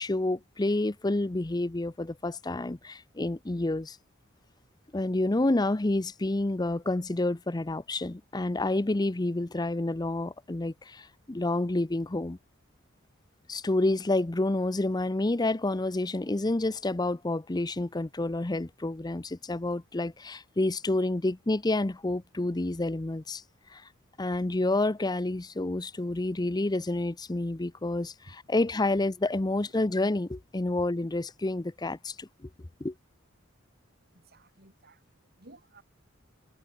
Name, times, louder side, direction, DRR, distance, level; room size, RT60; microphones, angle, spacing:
voice 1, 0.0-4.0 4.9-12.4 13.5-23.4 23.7-23.8 24.2-32.5 32.8-32.9, left 2 dB, 20° left, 0.6 m, -29 dB
voice 2, 34.1-35.0 35.4-35.8, right 2 dB, 50° right, 5.1 m, -55 dB
head